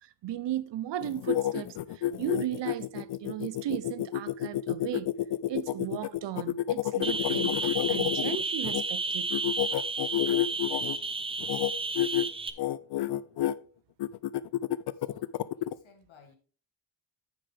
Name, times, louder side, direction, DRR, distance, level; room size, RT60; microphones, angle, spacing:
voice 1, 0.0-5.1 5.5-9.3, right 12 dB, 65° right, 0.6 m, -36 dB
sound 1, 1.0-8.8 9.3-11.0 11.4-11.7 12.0-12.3 12.6-13.5 14.0-15.7, left 13 dB, 60° left, 0.5 m, -29 dB
sound 2, 7.0-12.5, right 3 dB, 15° right, 0.4 m, -32 dB
voice 2, 15.1-16.4, left 5 dB, 85° left, 2.1 m, -58 dB
9.8 x 6.7 x 3.4 m
wide cardioid pair, 180°, 45 cm